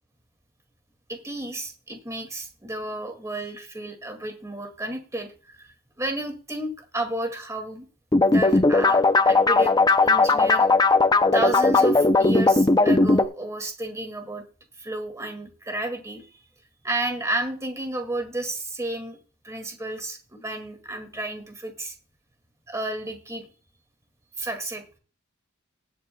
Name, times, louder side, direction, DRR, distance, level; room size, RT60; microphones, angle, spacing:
voice 1, 1.1-7.9 8.2-9.7 10.0-10.7 11.3-14.4 14.8-16.3 16.8-19.2 19.4-21.9 22.7-23.5 24.4-24.8, right 1 dB, 15° right, 5 dB, 2.1 m, -32 dB
sound 1, 8.1-13.3, left 3 dB, 20° left, 0.5 m, -18 dB
19.5 x 8.6 x 2.2 m, 0.37 s
head